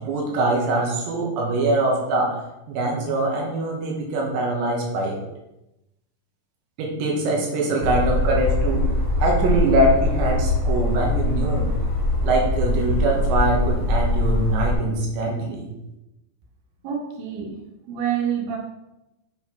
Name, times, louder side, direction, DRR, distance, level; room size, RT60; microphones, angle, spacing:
voice 1, 0.0-2.3 2.7-5.2 6.8-8.9 9.2-11.7 12.2-15.7, right 2 dB, 80° right, -1 dB, 3.7 m, -23 dB
sound 1, 7.8-14.7, left 2 dB, 25° right, 2.0 m, -22 dB
voice 2, 16.8-17.6 17.9-18.6, right 8 dB, 65° right, -1 dB, 2.9 m, -27 dB
8.0 x 4.7 x 5.4 m, 0.93 s
omnidirectional pair, 5.0 m